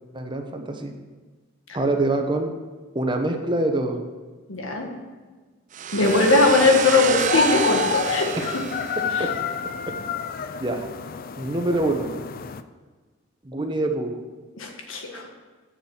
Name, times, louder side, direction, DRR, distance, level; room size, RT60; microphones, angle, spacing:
voice 1, 0.1-0.9 1.7-2.5 2.9-4.0 9.2-9.3 10.6-10.9 11.4-12.1 13.4-14.2, right 2 dB, 25° right, 4 dB, 1.0 m, -25 dB
voice 2, 4.5-4.9 5.9-8.3 9.2-9.3 14.6-15.3, left 3 dB, 85° left, 2 dB, 1.7 m, -20 dB
sound 1, 5.7-9.5, right 7 dB, 40° right, 0.5 m, -29 dB
sound 2, 6.0-12.6, left 6 dB, 45° left, 0.4 m, -29 dB
7.7 x 6.6 x 7.2 m, 1.4 s
head